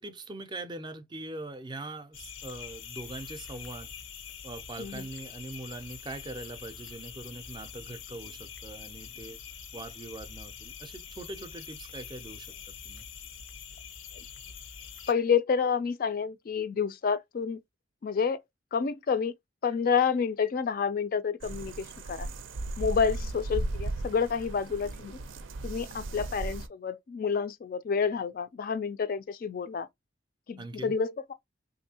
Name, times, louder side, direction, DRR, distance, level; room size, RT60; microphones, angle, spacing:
voice 1, 0.0-3.9 4.4-9.4 9.7-13.1 23.1-23.4 26.1-26.3 30.6-31.0, right 2 dB, 25° right, 0.4 m, -42 dB
sound 1, 2.1-15.1, left 7 dB, 85° left, 0.7 m, -45 dB
voice 2, 15.1-17.6 18.0-18.4 18.7-19.3 19.6-22.3 22.8-25.2 25.6-29.9 30.5-31.3, left 6 dB, 45° left, 0.3 m, -29 dB
sound 2, 21.4-26.7, right 2 dB, 85° right, 0.5 m, -36 dB
3.5 x 2.6 x 2.7 m
head